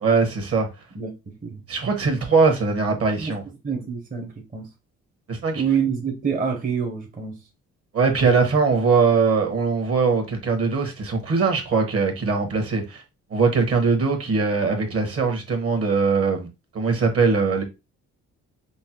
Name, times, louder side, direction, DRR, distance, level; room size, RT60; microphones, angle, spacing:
voice 1, 0.0-0.7 1.7-3.4 5.3-5.6 7.9-13.0 13.3-16.5 16.7-17.6, right 4 dB, 50° right, 1.3 m, -21 dB
voice 2, 0.9-1.6 3.2-3.3 3.6-4.7 5.6-7.4, right 7 dB, 30° right, 0.8 m, -27 dB
5.3 x 2.1 x 2.9 m
cardioid pair, 90°, 30 cm